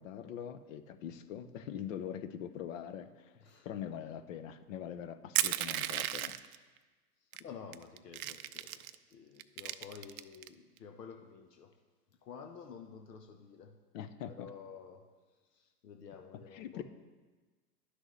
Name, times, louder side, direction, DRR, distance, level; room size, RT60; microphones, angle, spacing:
voice 1, 0.0-3.3 3.6-6.4 13.9-14.5 16.5-16.8, left 9 dB, 55° left, 11 dB, 0.7 m, -43 dB
Crushing, 5.4-6.6 7.3-7.4 7.7-9.0 9.4-10.5, right 13 dB, 65° right, 0.5 m, -34 dB
voice 2, 7.2-11.7 12.1-13.7 14.3-15.1 15.4-16.8, left 6 dB, 80° left, 4 dB, 0.9 m, -51 dB
11.0 x 6.2 x 3.2 m, 1.3 s
hypercardioid pair, 115°, 47 cm